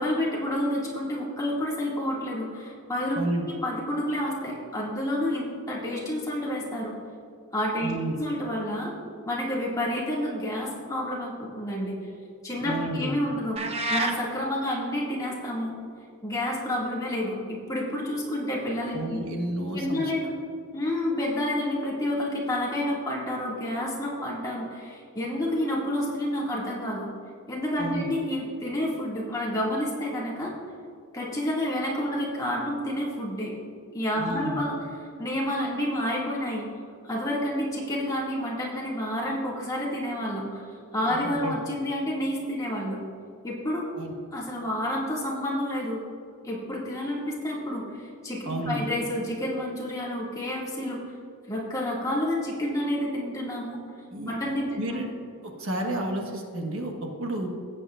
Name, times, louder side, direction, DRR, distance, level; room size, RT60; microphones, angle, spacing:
voice 1, 0.0-3.2 3.5-6.9 7.5-7.9 8.2-8.9 9.2-12.0 12.4-13.6 13.9-15.7 16.2-19.2 19.7-20.3 20.7-27.1 27.5-30.5 31.1-33.5 33.9-34.7 35.2-36.7 37.0-40.6 40.9-43.0 43.4-43.8 44.3-46.0 46.4-51.0 51.5-53.8 54.3-55.0, left 1 dB, 15° left, -5 dB, 2.0 m, -29 dB
voice 2, 3.1-3.4 7.8-8.1 12.6-13.1 18.9-20.1 27.8-28.1 34.2-34.6 41.1-41.5 43.9-44.1 48.4-48.8 54.1-55.1 55.6-57.5, right 1 dB, 65° right, 2 dB, 1.3 m, -31 dB
sound 1, 13.6-14.2, right 2 dB, 30° right, 0.7 m, -27 dB
16.5 x 8.2 x 2.4 m, 2.3 s
head